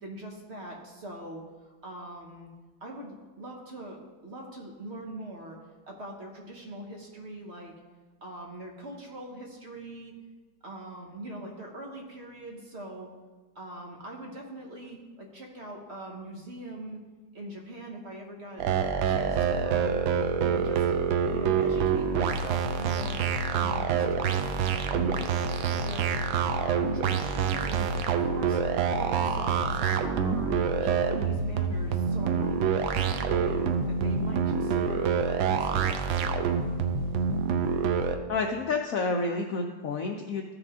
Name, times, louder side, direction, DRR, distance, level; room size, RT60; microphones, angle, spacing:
voice 1, 0.0-2.5 2.8-5.6 5.9-7.7 8.2-10.1 10.6-13.1 13.5-17.0 17.3-20.1 20.4-20.9 21.3-24.6 24.8-26.2 26.5-28.6 28.9-30.5 30.8-32.6 32.9-35.9, right 1 dB, 40° right, -1 dB, 1.1 m, -42 dB
sound 1, 18.6-38.2, right 6 dB, 85° right, 1.4 m, -27 dB
voice 2, 38.3-40.5, left 3 dB, 90° left, 3 dB, 0.7 m, -29 dB
14.0 x 4.9 x 3.6 m, 1.4 s
omnidirectional pair, 2.1 m